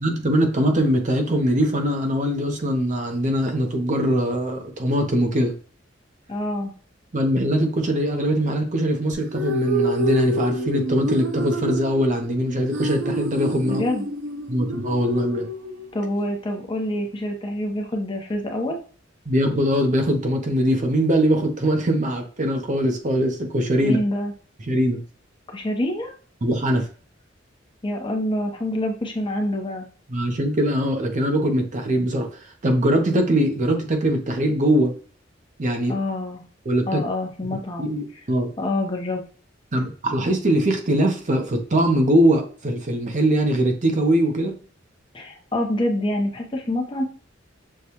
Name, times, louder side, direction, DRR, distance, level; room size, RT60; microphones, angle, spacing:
voice 1, 0.0-5.5 7.1-13.8 14.5-15.5 19.3-24.0 24.7-25.0 26.4-26.9 30.1-32.3 32.6-34.9 35.6-36.0 36.7-37.0 37.8-38.5 39.7-44.5, equal, 40° right, 4 dB, 0.7 m, -21 dB
voice 2, 6.3-6.7 13.7-14.0 15.9-18.8 23.8-24.3 25.5-26.1 27.8-29.9 35.9-36.4 36.9-37.9 38.6-39.2 45.1-47.0, left 1 dB, 25° left, 2 dB, 0.7 m, -26 dB
sound 1, 9.1-16.2, right 1 dB, 90° right, 0.6 m, -28 dB
6.5 x 2.2 x 2.9 m, 0.40 s
head